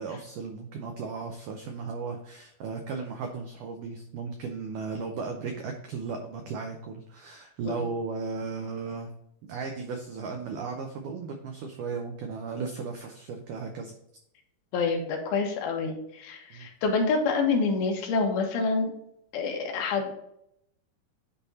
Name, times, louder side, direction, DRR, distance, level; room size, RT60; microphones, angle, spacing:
voice 1, 0.0-9.1 9.4-14.0 16.5-16.7, right 4 dB, 85° right, 4 dB, 1.8 m, -35 dB
voice 2, 14.7-18.9 19.3-20.2, left 4 dB, 75° left, 2 dB, 2.8 m, -27 dB
9.9 x 3.5 x 4.1 m, 0.76 s
omnidirectional pair, 4.6 m